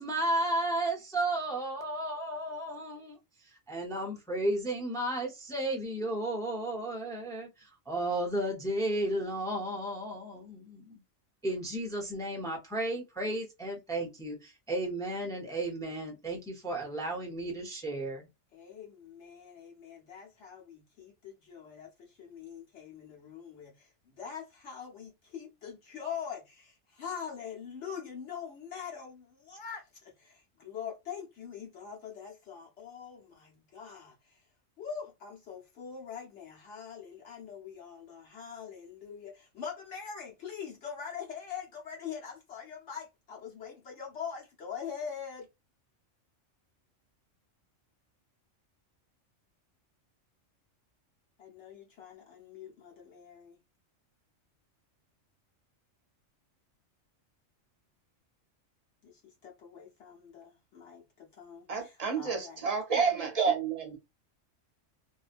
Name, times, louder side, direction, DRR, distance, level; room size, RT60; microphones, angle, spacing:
voice 1, 0.0-3.2 3.7-11.0 11.4-18.3, right 1 dB, 5° left, 0.3 m, -33 dB
voice 2, 18.5-34.4 34.8-45.5 51.4-53.6 59.0-62.6, left 7 dB, 65° left, 1.1 m, -43 dB
voice 3, 61.7-64.0, right 5 dB, 40° right, 0.6 m, -29 dB
2.7 x 2.3 x 2.4 m
omnidirectional pair, 1.3 m